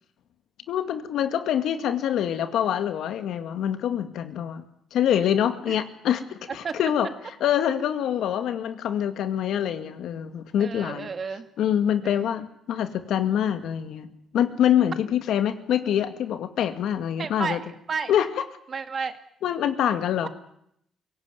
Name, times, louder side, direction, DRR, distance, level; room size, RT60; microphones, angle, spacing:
voice 1, 0.7-4.6 4.9-7.1 7.4-11.1 11.6-14.1 14.3-17.6 18.1-18.4 19.4-20.3, left 10 dB, 80° left, 9 dB, 2.1 m, -25 dB
voice 2, 10.6-11.5 12.0-12.3 17.2-17.6 17.9-18.1 18.7-19.2 20.2-20.3, right 5 dB, 45° right, 9 dB, 1.9 m, -31 dB
24.0 x 17.5 x 9.3 m, 0.74 s
cardioid pair, 90°, 0 cm